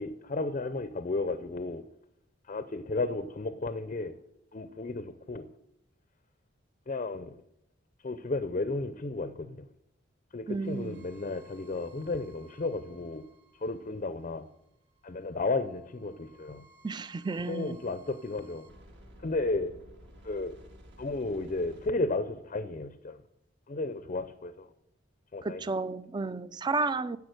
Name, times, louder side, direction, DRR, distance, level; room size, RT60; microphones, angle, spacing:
voice 1, 0.0-1.9 2.5-4.2 4.5-5.5 6.9-7.4 8.0-9.7 10.3-13.3 13.6-14.5 15.0-16.6 17.5-18.7 19.2-19.8 20.2-20.6 21.0-23.2 23.7-24.7 25.3-25.6, left 3 dB, 40° left, 0.5 m, -33 dB
voice 2, 10.5-11.0 16.8-17.8 25.4-27.2, right 3 dB, 20° right, 0.3 m, -32 dB
sound 1, 10.6-21.9, right 1 dB, 60° right, 1.9 m, -56 dB
10.5 x 7.1 x 6.5 m
head